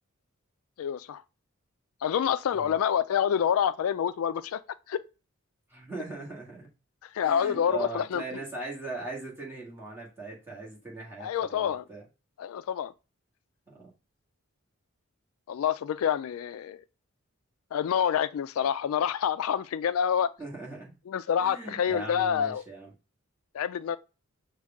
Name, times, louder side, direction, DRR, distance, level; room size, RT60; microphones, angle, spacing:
voice 1, 0.8-1.2 2.0-4.6 4.9-5.0 7.1-8.4 11.2-11.8 12.4-12.9 15.5-16.8 17.7-20.3 21.1-22.6 23.5-24.0, left 8 dB, 80° left, 0.3 m, -27 dB
voice 2, 5.7-6.7 7.2-12.0 13.7-13.9 20.4-20.9 21.4-22.9, right 3 dB, 10° right, 1.7 m, -39 dB
6.3 x 2.3 x 3.5 m
head